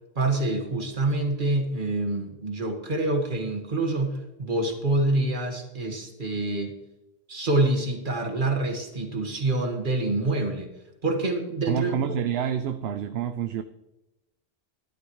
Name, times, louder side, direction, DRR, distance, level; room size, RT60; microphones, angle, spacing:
voice 1, 0.2-6.7 7.3-10.7 11.0-12.0, right 2 dB, 50° right, 3 dB, 1.8 m, -26 dB
voice 2, 11.7-13.6, right 8 dB, 70° right, 10 dB, 0.8 m, -28 dB
13.5 x 11.5 x 3.1 m, 0.95 s
omnidirectional pair, 1.1 m